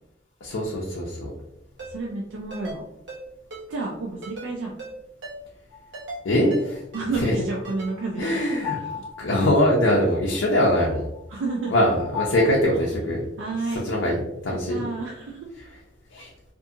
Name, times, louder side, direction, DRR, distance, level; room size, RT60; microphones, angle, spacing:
voice 1, 0.4-1.3 6.2-6.8 7.2-7.3 8.2-8.8 9.2-11.1 11.7-13.2 13.7-14.8 16.1-16.3, left 1 dB, 80° left, -3 dB, 0.5 m, -22 dB
Ringtone, 1.8-1.9 2.5-2.8 3.1-3.2 3.5-3.6 4.2-4.5 4.8-4.9 5.2-5.4 5.9-6.2 6.5-6.6 6.9-7.1 7.6-7.9 8.2-8.3, right 2 dB, 60° right, 0.9 m, -37 dB
voice 2, 1.9-2.8 3.7-4.7 6.9-8.5 8.8-9.0 11.3-11.7 12.9-13.0 13.4-13.8 14.5-15.5, right 3 dB, 80° right, -2 dB, 0.4 m, -30 dB
sound 1, 5.7-5.8 7.6-12.5, left 9 dB, 15° right, 0.9 m, -37 dB
2.7 x 2.5 x 2.4 m, 0.86 s
head